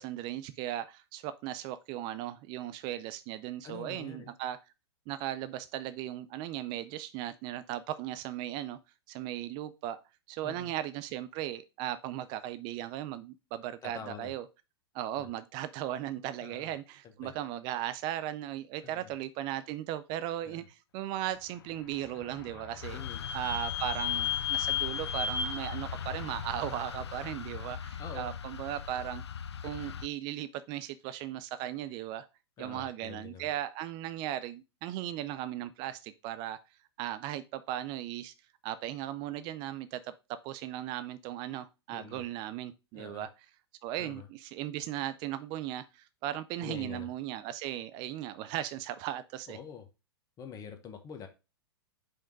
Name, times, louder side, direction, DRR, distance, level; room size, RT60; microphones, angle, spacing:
voice 1, 0.0-4.6 5.1-8.8 9.1-10.0 10.3-14.5 14.9-23.0 23.3-29.2 29.6-32.3 32.6-36.6 37.0-38.3 38.6-43.3 43.8-49.6, right 12 dB, 35° right, 0.4 m, -37 dB
voice 2, 3.6-4.3 10.4-10.7 13.8-14.3 15.2-15.3 16.4-16.7 17.0-17.3 18.8-19.1 20.4-20.6 22.9-23.2 28.0-28.3 32.6-33.5 41.9-42.2 42.9-43.3 44.0-44.3 46.6-47.1 49.5-49.8 50.4-51.3, left 7 dB, 25° left, 1.1 m, -45 dB
Vehicle / Squeak, 21.6-27.2, left 8 dB, 60° left, 1.2 m, -36 dB
sound 1, 22.8-30.1, left 7 dB, 85° left, 0.4 m, -40 dB
5.2 x 3.6 x 5.1 m
hypercardioid pair, 110°, 14 cm